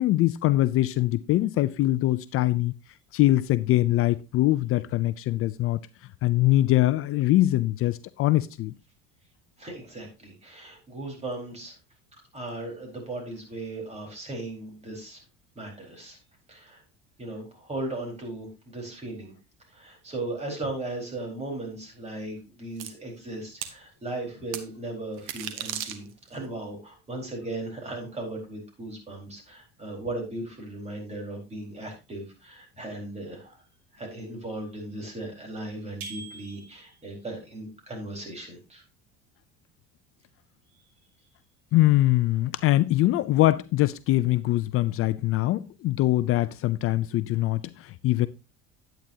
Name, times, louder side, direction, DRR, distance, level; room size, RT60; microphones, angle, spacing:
voice 1, 0.0-2.7 3.1-5.8 6.2-8.7 41.7-48.3, left 16 dB, 50° left, 0.5 m, -23 dB
voice 2, 9.6-11.7 12.3-15.2 15.6-16.2 16.5-16.8 17.2-19.3 19.7-33.6 33.9-38.8, right 2 dB, 20° right, 4.5 m, -37 dB
sound 1, 22.8-22.9 23.6-23.8 24.5-24.6 25.2-26.4, right 11 dB, 85° right, 1.3 m, -35 dB
sound 2, 36.0-37.1, right 4 dB, 65° right, 4.0 m, -42 dB
10.5 x 9.0 x 2.8 m
cardioid pair, 120°, 29 cm